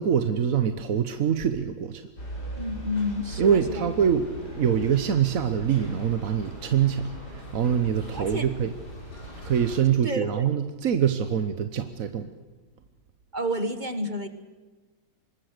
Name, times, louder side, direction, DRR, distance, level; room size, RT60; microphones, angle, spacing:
voice 1, 0.0-2.0 3.4-8.7 9.4-12.3, right 8 dB, 50° right, 9 dB, 1.1 m, -24 dB
sound 1, 2.2-9.8, right 1 dB, 50° left, 5.6 m, -40 dB
voice 2, 2.6-3.8 8.1-8.4 10.0-10.5 13.3-14.3, equal, 25° right, 10 dB, 1.3 m, -30 dB
25.5 x 21.0 x 6.7 m, 1.3 s
omnidirectional pair, 2.3 m